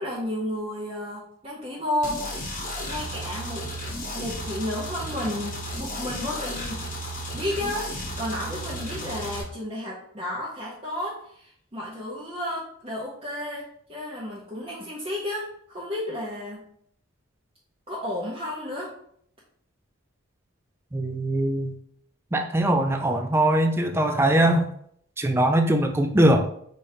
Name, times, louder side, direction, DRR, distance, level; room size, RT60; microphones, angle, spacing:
voice 1, 0.0-2.4 2.8-3.6 4.1-6.8 7.3-16.7 17.9-18.9, left 1 dB, 25° right, -7 dB, 0.8 m, -32 dB
sound 1, 2.0-9.4, equal, 35° left, 1.0 m, -34 dB
voice 2, 20.9-21.7 22.3-24.7 25.2-26.5, right 1 dB, 10° right, 5 dB, 0.3 m, -21 dB
5.3 x 3.3 x 2.7 m, 0.65 s
head